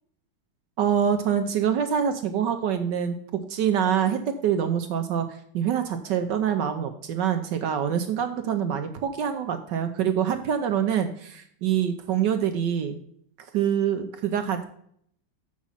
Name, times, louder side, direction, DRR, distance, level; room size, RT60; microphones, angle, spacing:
voice 1, 0.8-13.0 13.5-14.6, right 8 dB, 70° right, 7 dB, 1.2 m, -25 dB
7.4 x 6.1 x 5.6 m, 0.65 s
omnidirectional pair, 2.3 m